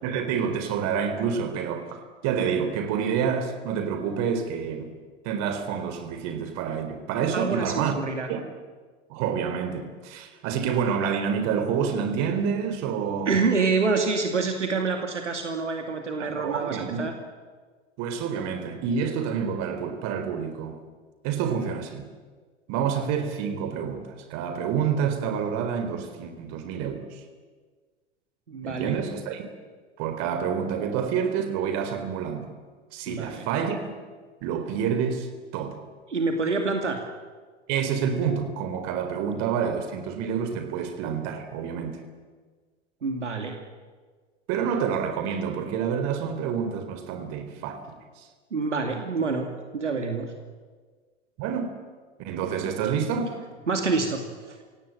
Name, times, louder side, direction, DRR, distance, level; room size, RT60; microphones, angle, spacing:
voice 1, 0.0-4.9 5.2-8.0 8.3-8.4 9.1-13.4 16.2-17.0 18.0-20.8 21.2-22.0 22.7-27.2 28.6-29.4 30.0-32.5 32.9-33.9 34.4-35.3 35.5-35.8 37.7-42.0 44.5-47.8 51.4-51.7 52.2-53.4, right 7 dB, 50° right, 8 dB, 3.9 m, -28 dB
voice 2, 7.3-8.3 13.3-17.1 28.5-28.9 33.1-33.5 36.1-37.0 43.0-43.6 48.5-49.5 49.7-50.3 53.7-54.6, right 4 dB, 85° right, 4 dB, 2.5 m, -27 dB
25.5 x 17.5 x 8.9 m, 1.5 s
figure-of-eight pair, 85°, 35 cm